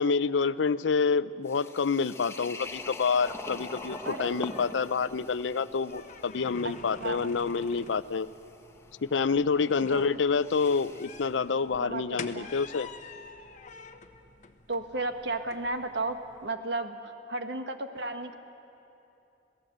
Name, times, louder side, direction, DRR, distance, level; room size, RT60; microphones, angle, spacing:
voice 1, 0.0-8.3 9.0-12.9, left 5 dB, 90° left, 16 dB, 0.5 m, -28 dB
sound 1, 1.5-11.3, left 2 dB, 15° left, 1.1 m, -45 dB
sound 2, 2.6-16.5, left 4 dB, 45° left, 1.1 m, -48 dB
voice 2, 4.0-4.4 6.6-6.7 7.0-7.3 9.8-10.0 11.8-12.0 12.3-12.5 14.7-17.0 17.3-18.4, right 2 dB, 70° right, 7 dB, 1.4 m, -33 dB
27.0 x 17.5 x 7.9 m, 2.9 s
head